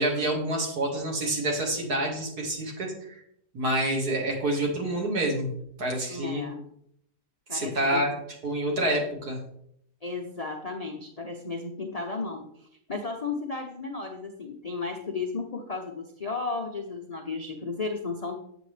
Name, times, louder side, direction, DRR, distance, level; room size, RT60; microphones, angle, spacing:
voice 1, 0.0-3.2 3.5-5.5 5.8-6.4 7.5-8.1 8.4-9.4, right 1 dB, 60° right, -1 dB, 2.5 m, -27 dB
voice 2, 6.1-6.7 7.5-8.0 10.0-18.4, left 4 dB, 55° left, 1 dB, 0.4 m, -34 dB
8.1 x 7.9 x 3.3 m, 0.72 s
omnidirectional pair, 1.8 m